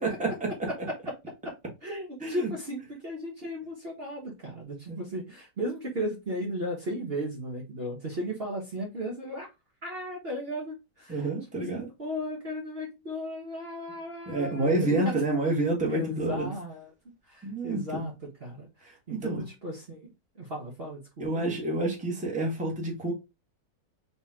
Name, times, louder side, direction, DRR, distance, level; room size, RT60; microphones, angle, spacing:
voice 1, 0.0-0.7 2.2-2.5 4.9-5.0 11.1-11.9 14.3-16.5 17.4-18.1 18.8-19.4 21.2-23.1, right 2 dB, 5° right, 1.2 m, -29 dB
voice 2, 1.8-9.5 9.8-11.2 11.6-15.2 15.9-16.9 17.3-18.1 18.4-20.1 20.4-21.5, equal, 40° right, 1.2 m, -35 dB
4.3 x 2.9 x 3.6 m
omnidirectional pair, 1.9 m